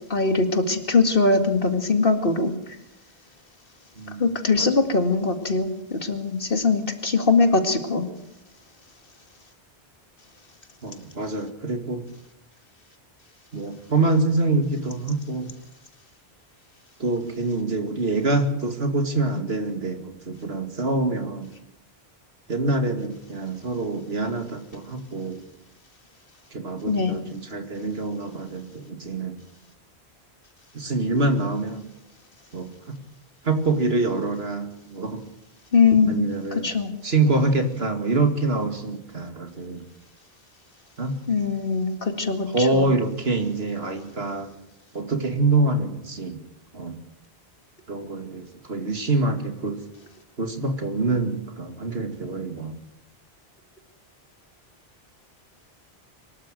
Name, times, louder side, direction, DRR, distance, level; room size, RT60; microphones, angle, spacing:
voice 1, 0.1-2.6 4.2-8.1 26.9-27.2 35.7-36.2 36.5-36.9 41.3-42.9, left 4 dB, 60° left, 7 dB, 2.4 m, -21 dB
voice 2, 10.8-12.0 13.5-15.5 17.0-21.5 22.5-25.5 26.5-29.4 30.7-31.9 32.5-32.7 33.4-35.2 36.1-36.7 37.0-39.8 41.0-41.1 42.5-44.5 44.9-46.4 46.7-47.0 47.9-49.8 50.4-52.8, right 2 dB, 70° right, 7 dB, 2.6 m, -25 dB
24.0 x 13.0 x 9.0 m, 0.80 s
omnidirectional pair, 1.1 m